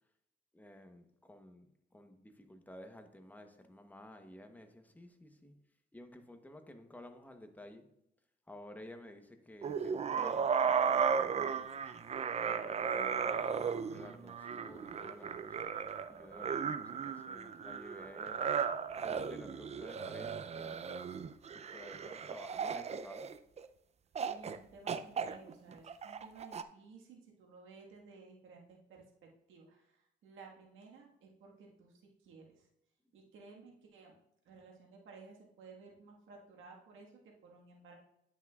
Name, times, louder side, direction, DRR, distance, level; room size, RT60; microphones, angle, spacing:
voice 1, 0.5-5.6 5.9-7.8 8.5-11.9 12.4-15.7 16.1-18.5 19.0-20.9 21.5-23.3, left 1 dB, 10° left, 6 dB, 0.9 m, -53 dB
sound 1, 9.6-23.7 24.2-24.6 24.9-26.6, right 6 dB, 35° right, 0.4 m, -35 dB
voice 2, 24.3-32.7 33.1-34.2 34.4-37.9, right 4 dB, 80° right, -1 dB, 1.6 m, -56 dB
9.9 x 5.9 x 2.4 m, 0.78 s
cardioid pair, 90°, 20 cm